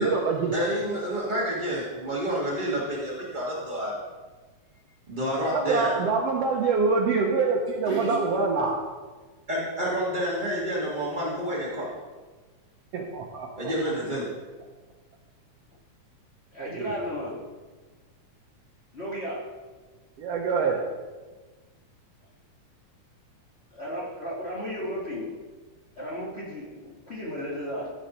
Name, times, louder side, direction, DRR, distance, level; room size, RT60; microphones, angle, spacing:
voice 1, 0.0-0.5 5.5-8.8 12.9-13.7 16.6-16.9 20.2-20.8, right 4 dB, 70° right, 1 dB, 1.6 m, -25 dB
voice 2, 0.5-4.0 5.1-6.0 7.9-8.2 9.5-11.9 13.6-14.3, equal, 35° right, -6 dB, 0.8 m, -29 dB
voice 3, 16.5-17.4 18.9-19.6 23.7-25.3 25.9-27.9, equal, 25° left, -6 dB, 1.5 m, -34 dB
14.5 x 5.3 x 4.2 m, 1.3 s
omnidirectional pair, 3.4 m